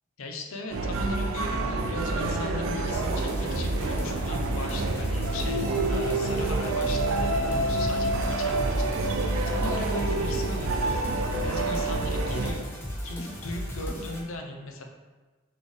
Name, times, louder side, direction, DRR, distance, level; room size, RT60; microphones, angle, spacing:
voice 1, 0.2-10.8 11.4-12.7 13.0-14.8, left 2 dB, 80° left, 3 dB, 0.6 m, -38 dB
sound 1, 0.7-12.5, right 2 dB, 80° right, 0.4 m, -28 dB
sound 2, 2.9-14.2, equal, 10° left, 0.5 m, -35 dB
4.2 x 3.2 x 3.4 m, 1.3 s
head